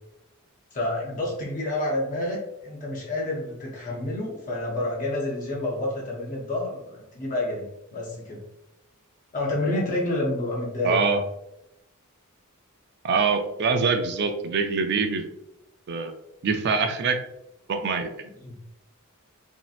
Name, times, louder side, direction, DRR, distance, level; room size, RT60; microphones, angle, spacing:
voice 1, 0.7-7.6 7.9-8.4 9.3-11.2 18.4-18.6, left 1 dB, 35° left, -3 dB, 0.6 m, -29 dB
voice 2, 10.8-11.2 13.0-15.2 15.9-16.1 16.4-17.2 17.7-18.1, right 4 dB, 50° right, 7 dB, 0.4 m, -24 dB
3.1 x 2.7 x 2.4 m, 0.85 s
head